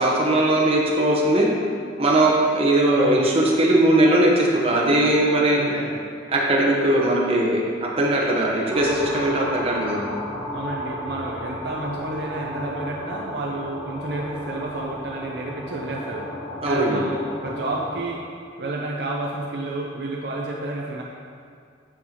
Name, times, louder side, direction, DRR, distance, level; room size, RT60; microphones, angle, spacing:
voice 1, 0.0-1.5 2.0-5.6 6.3-10.1 16.6-17.0, right 1 dB, 30° right, -3 dB, 1.0 m, -19 dB
voice 2, 5.5-6.1 10.5-16.3 16.6-18.2 18.6-21.0, right 2 dB, 60° right, -2 dB, 0.5 m, -30 dB
sound 1, 8.7-18.0, left 1 dB, 10° left, 0.8 m, -34 dB
7.4 x 6.2 x 3.0 m, 2.3 s
head